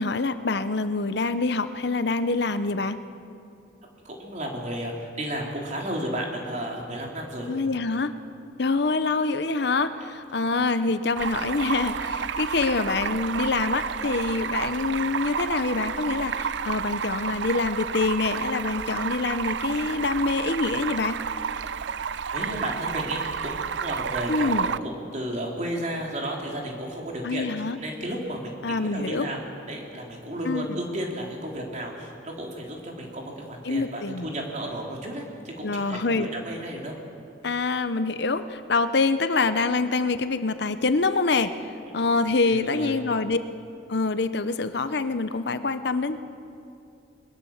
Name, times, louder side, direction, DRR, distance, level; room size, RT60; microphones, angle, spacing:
voice 1, 0.0-3.0 7.5-8.1 8.6-21.2 24.3-24.7 27.2-27.8 28.6-29.3 30.5-30.7 33.6-34.3 35.6-36.3 37.4-43.4 43.9-46.2, left 3 dB, 60° left, 11 dB, 0.8 m, -25 dB
voice 2, 4.0-7.5 10.8-10.9 22.3-29.4 29.7-37.0 42.4-43.0, right 1 dB, 40° right, 0 dB, 3.4 m, -33 dB
Stream, 11.2-24.8, right 6 dB, 70° right, 0.5 m, -30 dB
21.5 x 21.0 x 7.2 m, 2.6 s
head